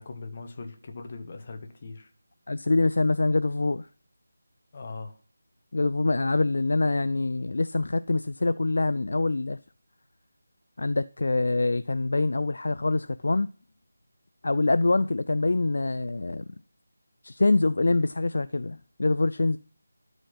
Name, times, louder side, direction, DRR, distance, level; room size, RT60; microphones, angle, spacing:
voice 1, 0.0-2.1 4.7-5.1, left 3 dB, 35° left, 1.4 m, -40 dB
voice 2, 2.5-3.9 5.7-9.6 10.8-13.5 14.4-16.4 17.2-19.6, left 2 dB, 55° left, 0.4 m, -25 dB
12.5 x 5.1 x 5.6 m
figure-of-eight pair, 160°, 0 cm